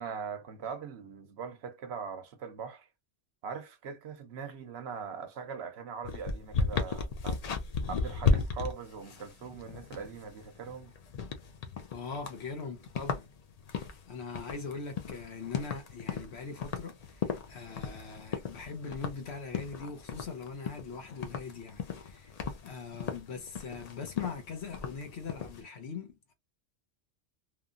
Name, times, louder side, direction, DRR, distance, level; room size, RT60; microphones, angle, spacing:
voice 1, 0.0-2.9 3.4-7.4 7.9-10.9, right 6 dB, 70° right, 0.9 m, -41 dB
sound 1, 6.0-25.6, left 5 dB, 50° left, 0.4 m, -35 dB
voice 2, 11.9-13.3 13.7-22.3 22.6-26.3, left 5 dB, 70° left, 1.1 m, -41 dB
3.0 x 2.3 x 2.4 m
omnidirectional pair, 1.2 m